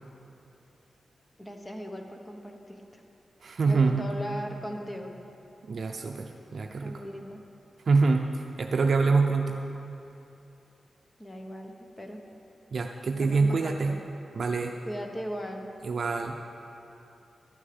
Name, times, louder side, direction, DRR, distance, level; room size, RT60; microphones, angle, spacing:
voice 1, 1.4-3.0 3.7-5.2 6.8-7.4 11.2-12.2 13.2-14.0 14.8-15.7, equal, 20° left, 3 dB, 1.1 m, -38 dB
voice 2, 3.4-4.1 5.7-7.0 7.9-8.3 8.6-9.6 12.7-14.0 14.3-14.7 15.8-16.4, right 4 dB, 65° right, 3 dB, 0.5 m, -25 dB
12.0 x 6.3 x 7.9 m, 2.8 s
cardioid pair, 75°, 0 cm